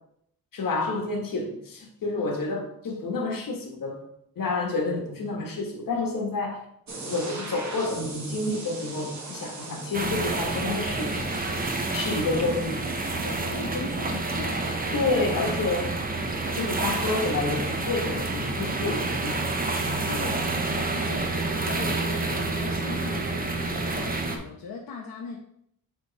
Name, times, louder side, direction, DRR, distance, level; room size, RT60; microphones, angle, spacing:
voice 1, 0.5-4.1 4.3-6.6 7.1-11.2 11.9-12.8 14.9-15.9 16.5-19.4, left 3 dB, 70° left, 1 dB, 1.6 m, -29 dB
sound 1, 6.9-13.7, right 2 dB, 50° right, 1.6 m, -40 dB
sound 2, 9.9-24.4, right 2 dB, 25° right, 0.7 m, -28 dB
voice 2, 13.2-14.8 20.1-25.4, left 5 dB, 85° left, -1 dB, 0.9 m, -39 dB
9.0 x 3.4 x 4.1 m, 0.71 s
wide cardioid pair, 160°, 35 cm